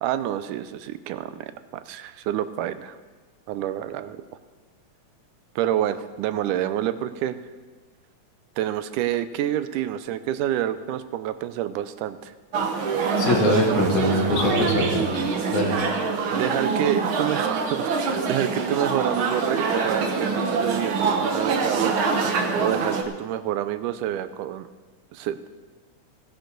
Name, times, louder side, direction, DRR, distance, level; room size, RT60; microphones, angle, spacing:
voice 1, 0.0-3.0 3.5-4.2 5.6-7.4 8.6-12.3 12.9-13.0 13.4-14.2 16.3-22.0 22.6-24.7 25.1-25.5, right 11 dB, 85° right, 12 dB, 2.1 m, -28 dB
sound 1, 12.5-23.0, right 4 dB, 65° right, 1.3 m, -25 dB
voice 2, 13.2-15.2 15.5-15.8, left 1 dB, 70° left, -2 dB, 3.7 m, -22 dB
16.0 x 11.0 x 3.9 m, 1.4 s
omnidirectional pair, 3.6 m